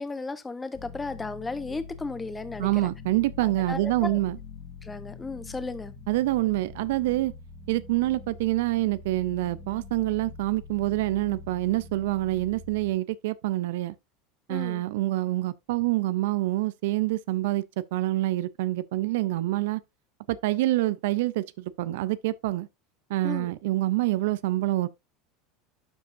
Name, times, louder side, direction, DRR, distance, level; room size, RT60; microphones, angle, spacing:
voice 1, 0.0-2.9 3.4-4.2 4.8-5.9 14.5-14.8 23.2-23.5, left 3 dB, 15° left, 0.9 m, -35 dB
sound 1, 0.7-12.9, left 4 dB, 30° left, 1.9 m, -44 dB
voice 2, 2.6-4.4 6.1-7.3 7.7-14.0 14.5-19.8 20.3-22.7 23.1-24.9, right 17 dB, 80° right, 0.5 m, -26 dB
12.0 x 5.2 x 2.6 m
supercardioid pair, 135°, 0 cm